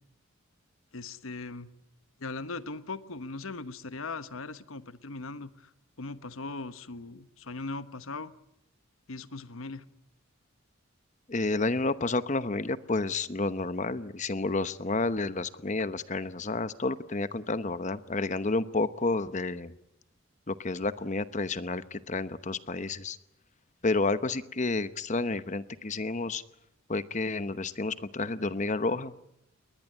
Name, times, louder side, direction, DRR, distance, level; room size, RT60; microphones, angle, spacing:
voice 1, 0.9-1.7 2.2-5.5 6.0-8.3 9.1-9.9, left 3 dB, 85° left, 13 dB, 1.2 m, -39 dB
voice 2, 11.3-19.7 20.5-23.2 23.8-26.4 26.9-29.1, left 3 dB, 35° left, 14 dB, 0.9 m, -30 dB
22.0 x 20.0 x 10.0 m, 0.82 s
head